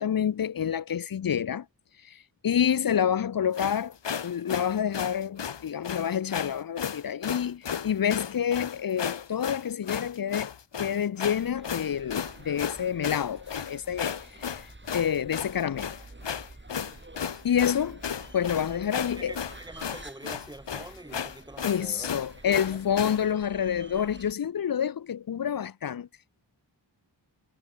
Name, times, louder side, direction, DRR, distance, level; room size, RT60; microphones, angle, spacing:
voice 1, 0.0-1.7 2.0-4.0 4.2-14.6 14.9-15.9 17.4-18.0 18.3-19.3 21.6-26.1, left 8 dB, 50° left, 0.6 m, -28 dB
sound 1, 3.5-23.2, left 7 dB, 70° left, 1.1 m, -34 dB
sound 2, 11.3-24.3, right 2 dB, 25° right, 4.0 m, -49 dB
voice 2, 18.9-22.1 22.4-22.8, right 1 dB, 10° right, 2.5 m, -45 dB
wide cardioid pair, 75°, 44 cm